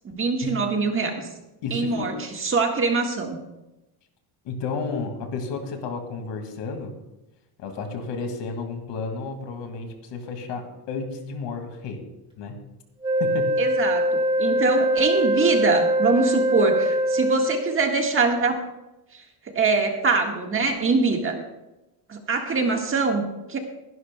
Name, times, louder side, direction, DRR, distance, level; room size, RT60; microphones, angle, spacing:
voice 1, 0.1-1.2 1.7-3.4 13.6-18.6 19.5-21.4 22.1-23.6, right 4 dB, 25° right, 3 dB, 1.5 m, -23 dB
voice 2, 1.6-2.2 4.4-6.9 7.6-12.0 12.4-12.6 13.2-13.6, left 4 dB, 65° left, 5 dB, 2.2 m, -32 dB
Wind instrument woodwind instrument, 13.0-17.8, right 1 dB, 10° right, 2.3 m, -23 dB
22.0 x 11.5 x 2.2 m, 0.97 s
cardioid pair, 145°, 47 cm